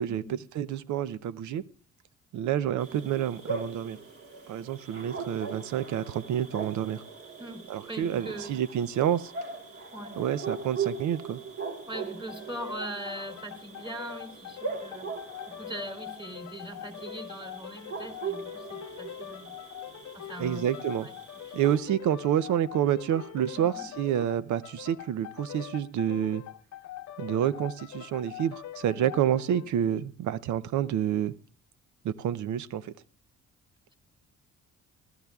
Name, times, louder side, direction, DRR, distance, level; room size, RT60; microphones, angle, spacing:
voice 1, 0.0-1.6 2.3-4.0 4.5-7.0 7.7-9.3 10.2-11.4 20.4-21.1 21.5-26.4 27.2-31.3 32.0-32.9, right 10 dB, 75° right, 17 dB, 0.6 m, -28 dB
sound 1, 2.8-21.8, right 5 dB, 50° right, 2.9 m, -40 dB
voice 2, 7.4-8.6 9.9-10.2 11.9-15.2 15.4-19.5 20.1-20.7 21.0-21.1 21.5-21.6 23.5-23.9 28.9-29.1 29.8-30.0, right 1 dB, 15° right, 3 dB, 3.0 m, -41 dB
sound 2, 12.3-29.7, left 12 dB, 65° left, 0.8 m, -43 dB
25.5 x 14.0 x 2.3 m, 0.40 s
cardioid pair, 90°, 30 cm